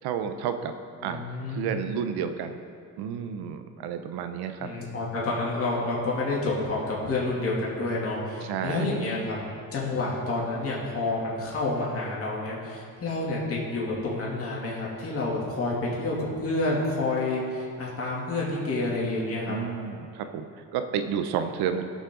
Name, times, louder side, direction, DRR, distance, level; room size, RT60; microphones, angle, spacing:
voice 1, 0.0-0.7 1.0-1.2 1.5-2.6 3.0-4.7 8.4-9.1 19.5-21.9, right 7 dB, 80° right, 8 dB, 0.9 m, -31 dB
voice 2, 1.0-1.7 4.6-9.3 9.7-19.5, left 2 dB, 40° left, -5 dB, 2.7 m, -29 dB
17.0 x 6.5 x 3.9 m, 2.2 s
cardioid pair, 110°, 37 cm